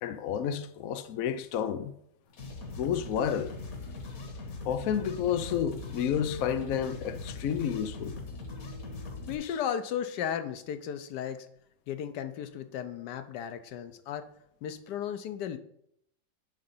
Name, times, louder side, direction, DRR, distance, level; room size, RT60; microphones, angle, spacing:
voice 1, 0.0-1.9 2.7-3.5 4.6-8.1, left 8 dB, 85° left, 0.7 m, -30 dB
sound 1, 2.3-9.3, left 3 dB, 50° left, 1.5 m, -41 dB
voice 2, 9.3-11.5 11.9-14.3 14.6-15.6, left 9 dB, 65° left, 1.1 m, -35 dB
10.5 x 3.8 x 5.5 m
omnidirectional pair, 2.2 m